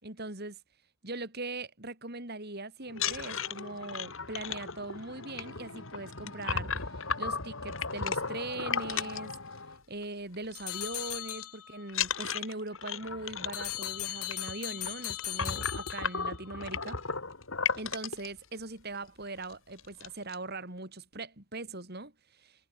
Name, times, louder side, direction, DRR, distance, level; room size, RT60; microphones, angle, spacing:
voice 1, 0.0-0.6 1.0-9.3 9.9-17.0 17.8-22.7, right 2 dB, 45° right, 4.3 m, -41 dB
sound 1, 2.9-10.0 10.3-10.6 10.9-11.4 11.9-18.3 18.9-19.0 19.4-19.5 19.8-20.4, left 6 dB, 60° left, 2.9 m, -35 dB
sound 2, 10.5-11.9 13.5-16.5, left 15 dB, 90° left, 2.2 m, -38 dB
head